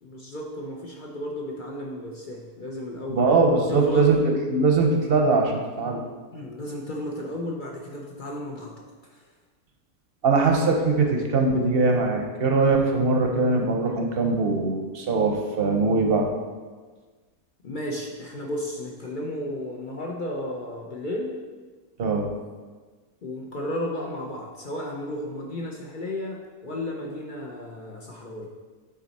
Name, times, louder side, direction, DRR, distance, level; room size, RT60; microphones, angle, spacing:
voice 1, 0.0-3.3 3.7-4.0 6.3-8.8 9.0-9.3 17.6-21.4 23.2-28.5, left 1 dB, 55° left, 0 dB, 0.5 m, -33 dB
voice 2, 3.1-4.2 4.5-6.0 10.2-16.3 22.0-22.3, right 3 dB, 50° right, 2 dB, 0.8 m, -21 dB
8.8 x 4.1 x 4.1 m, 1.4 s
omnidirectional pair, 1.7 m